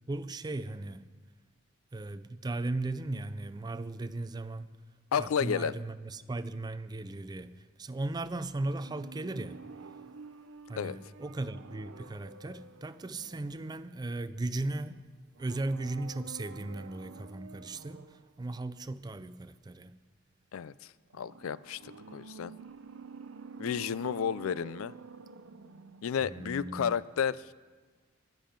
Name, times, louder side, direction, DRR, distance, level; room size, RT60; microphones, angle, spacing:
voice 1, 0.1-1.1 1.9-4.7 5.2-9.6 10.7-15.0 15.4-18.0 18.4-19.9 26.2-27.0, right 2 dB, 20° right, 0.4 m, -37 dB
voice 2, 5.1-5.7 10.8-11.0 20.5-20.7 21.1-22.5 23.6-24.9 26.0-27.4, left 7 dB, 75° left, 0.4 m, -32 dB
sound 1, 8.5-14.2 15.3-18.3 21.1-26.3 26.6-26.7, right 4 dB, 65° right, 0.6 m, -49 dB
20.5 x 7.4 x 5.2 m
head